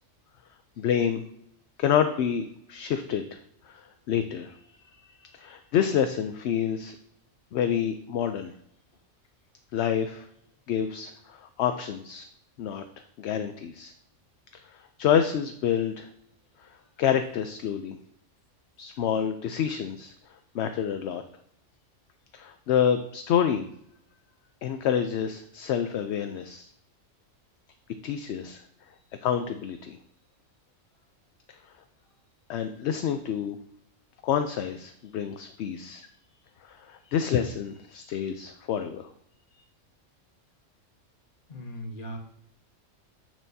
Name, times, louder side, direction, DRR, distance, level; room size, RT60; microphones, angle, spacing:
voice 1, 0.8-1.2 1.8-3.4 3.7-4.6 5.0-7.0 7.5-8.5 9.7-10.3 10.7-12.3 12.6-12.8 13.2-13.9 14.7-16.1 17.0-18.0 18.8-20.1 20.5-21.2 22.3-23.7 24.6-26.7 28.0-28.6 29.2-30.0 32.5-33.6 34.2-36.1 36.6-39.1, left 8 dB, 65° left, 8 dB, 0.8 m, -28 dB
voice 2, 41.5-42.2, equal, 45° left, 2 dB, 1.4 m, -39 dB
8.0 x 7.4 x 2.7 m, 0.71 s
omnidirectional pair, 1.3 m